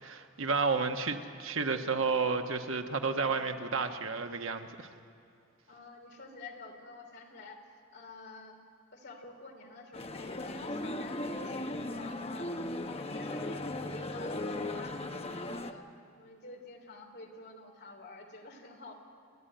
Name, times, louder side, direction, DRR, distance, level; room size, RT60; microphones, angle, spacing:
voice 1, 0.0-4.9, right 4 dB, 80° right, 5 dB, 1.3 m, -31 dB
voice 2, 5.7-7.6 7.9-8.6 8.9-12.5 12.9-15.9 16.2-18.9, left 2 dB, 55° left, 2 dB, 3.3 m, -49 dB
Male speech man speaking, 9.9-15.7, left 2 dB, 30° left, 0.9 m, -37 dB
29.0 x 11.5 x 9.2 m, 2.6 s
head